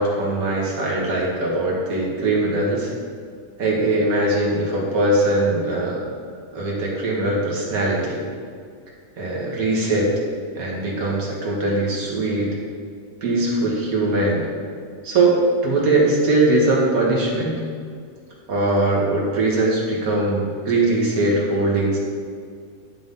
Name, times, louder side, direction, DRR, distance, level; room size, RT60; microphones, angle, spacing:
voice 1, 0.0-2.9 3.6-6.0 6.5-8.2 9.2-10.1 10.5-12.6 13.2-14.4 15.0-17.5 18.5-22.0, right 2 dB, 85° right, -3 dB, 1.8 m, -21 dB
10.5 x 4.0 x 3.7 m, 2.1 s
omnidirectional pair, 1.5 m